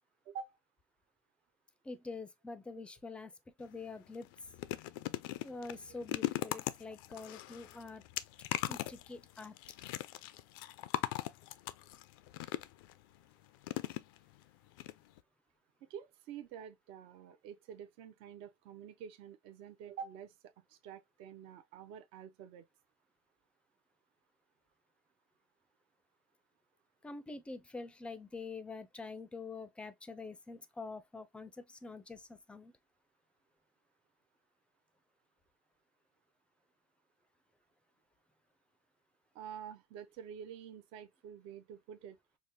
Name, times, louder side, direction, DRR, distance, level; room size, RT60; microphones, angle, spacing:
voice 1, 0.3-0.6 15.8-20.3 20.7-22.7 39.3-42.2, right 8 dB, 55° right, 0.5 m, -48 dB
voice 2, 1.8-3.3 3.6-4.3 5.4-8.0 8.7-9.6 27.0-32.7, left 3 dB, 10° left, 0.4 m, -46 dB
sound 1, 3.6-3.8 4.1-12.9 13.6-14.4 14.8-14.9 15.2-15.3, left 16 dB, 80° left, 0.4 m, -39 dB
4.9 x 2.0 x 2.6 m
supercardioid pair, 135°, 11 cm